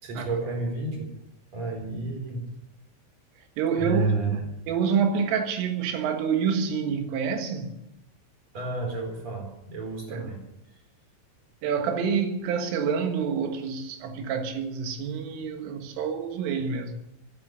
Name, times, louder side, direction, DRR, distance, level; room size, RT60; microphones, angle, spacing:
voice 1, 0.0-1.1 1.5-2.5 3.8-4.4 8.5-10.4, right 3 dB, 35° right, 4.9 m, -30 dB
voice 2, 3.6-4.0 4.7-7.7 10.1-10.2 11.6-16.9, right 6 dB, 90° right, 4.2 m, -27 dB
17.5 x 11.0 x 7.0 m
omnidirectional pair, 5.6 m